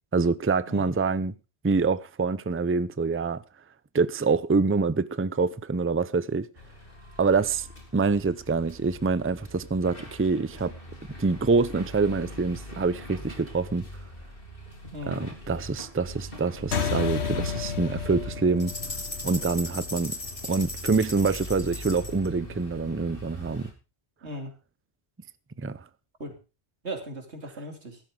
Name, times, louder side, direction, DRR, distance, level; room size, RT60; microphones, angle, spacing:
voice 1, 0.1-1.3 1.6-3.4 3.9-6.5 7.2-7.7 7.9-10.7 11.2-13.9 15.1-18.7 19.2-20.2 20.5-23.7 25.6-25.8, right 4 dB, 15° right, 0.5 m, -26 dB
sound 1, 6.5-23.7, equal, 55° left, 3.9 m, -43 dB
sound 2, 16.7-21.5, left 6 dB, 75° left, 1.4 m, -33 dB
sound 3, 18.6-22.3, left 2 dB, 30° left, 1.9 m, -37 dB
voice 2, 24.2-24.5 26.2-26.3 26.8-28.0, right 1 dB, 80° right, 3.3 m, -37 dB
15.5 x 12.5 x 3.8 m
omnidirectional pair, 1.1 m